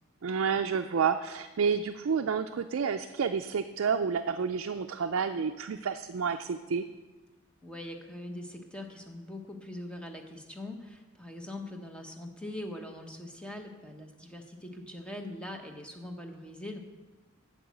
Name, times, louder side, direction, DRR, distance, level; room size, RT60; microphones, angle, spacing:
voice 1, 0.2-6.8, right 6 dB, 65° right, 6 dB, 0.4 m, -30 dB
voice 2, 7.6-16.8, left 1 dB, 5° left, 3 dB, 0.9 m, -42 dB
8.7 x 6.1 x 8.3 m, 1.2 s
head